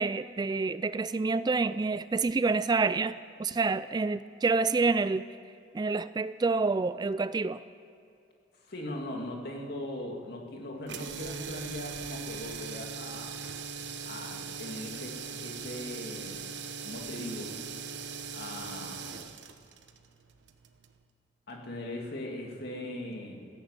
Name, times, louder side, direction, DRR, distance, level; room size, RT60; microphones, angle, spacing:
voice 1, 0.0-5.3 5.7-7.6, right 4 dB, 25° right, 15 dB, 0.3 m, -28 dB
voice 2, 8.5-13.4 14.0-16.5 16.8-17.6 18.3-19.2 21.5-23.5, left 1 dB, 60° left, 1 dB, 2.5 m, -40 dB
sound 1, 10.8-21.0, right 5 dB, 80° right, 1.0 m, -40 dB
15.5 x 11.0 x 8.1 m, 2.6 s
head